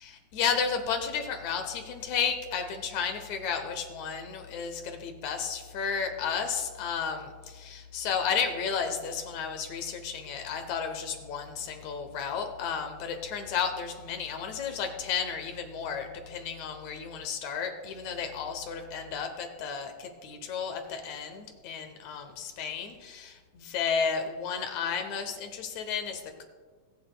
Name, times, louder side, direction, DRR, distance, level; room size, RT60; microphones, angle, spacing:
voice 1, 0.0-26.4, left 6 dB, 75° left, 6 dB, 1.7 m, -33 dB
22.0 x 7.8 x 2.2 m, 1.5 s
omnidirectional pair, 4.2 m